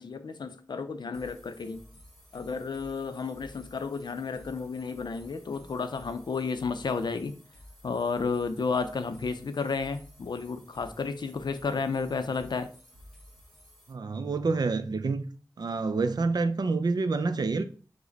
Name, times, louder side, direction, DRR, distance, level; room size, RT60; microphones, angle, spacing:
voice 1, 0.0-1.8 2.3-7.3 7.8-12.7, left 4 dB, 75° left, 0.5 m, -32 dB
sound 1, 1.1-13.9, equal, 5° left, 1.3 m, -53 dB
voice 2, 13.9-15.3 15.6-17.6, right 3 dB, 65° right, 0.4 m, -27 dB
4.9 x 2.1 x 3.9 m
wide cardioid pair, 70°, 8 cm